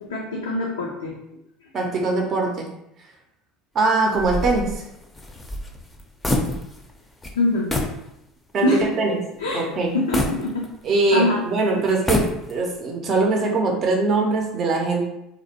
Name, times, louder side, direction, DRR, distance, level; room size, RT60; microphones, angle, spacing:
voice 1, 0.0-1.2 7.4-7.7 8.6-8.9 9.4-9.7 9.9-10.6 11.1-11.4, left 2 dB, 90° left, -2 dB, 0.3 m, -23 dB
voice 2, 1.7-2.7 3.7-4.9 8.5-9.2 9.5-9.9 10.8-12.2 12.5-15.0, right 3 dB, 45° right, 0 dB, 0.5 m, -22 dB
sound 1, 4.1-7.0 7.2-7.4 7.7-8.0 8.5-8.6 10.1-11.1 11.9-12.8, left 1 dB, 15° left, 0.5 m, -26 dB
2.5 x 2.0 x 2.8 m, 0.82 s
hypercardioid pair, 75°, 0 cm